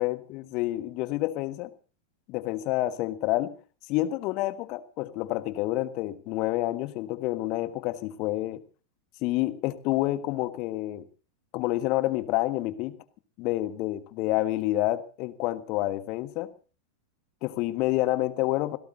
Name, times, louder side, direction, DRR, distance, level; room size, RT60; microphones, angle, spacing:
voice 1, 0.0-1.7 2.3-3.5 3.9-8.6 9.2-11.1 11.5-13.0 13.4-16.5 17.4-18.8, left 17 dB, 40° left, 1.5 m, -28 dB
28.0 x 17.0 x 2.8 m
figure-of-eight pair, 90°, 0 cm